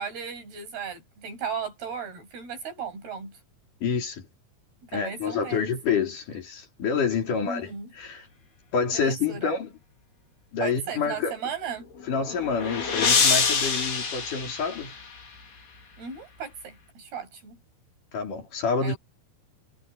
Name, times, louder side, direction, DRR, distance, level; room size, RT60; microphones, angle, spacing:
voice 1, 0.0-3.4 4.8-5.7 7.3-7.9 8.9-9.5 10.6-11.9 16.0-17.6 18.8-19.0, right 6 dB, 80° right, 9.8 m, -36 dB
voice 2, 3.8-4.3 4.9-8.3 8.7-9.7 10.5-11.4 12.1-15.0 18.1-18.9, left 5 dB, 55° left, 5.2 m, -28 dB
sound 1, 12.0-15.3, left 5 dB, 75° left, 7.0 m, -26 dB
omnidirectional pair, 4.5 m